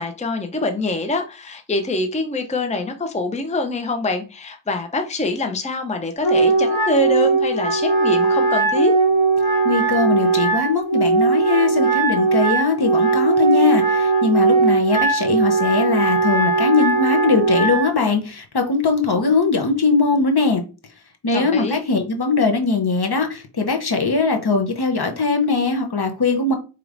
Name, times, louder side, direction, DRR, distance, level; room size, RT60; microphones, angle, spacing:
voice 1, 0.0-8.9 21.3-21.8, left 2 dB, 15° left, 0.6 m, -25 dB
Wind instrument woodwind instrument, 6.2-17.9, right 3 dB, 90° left, 1.7 m, -18 dB
voice 2, 9.6-20.6 21.2-26.5, left 4 dB, 55° left, 0.8 m, -20 dB
4.7 x 3.0 x 2.5 m
wide cardioid pair, 55°, 46 cm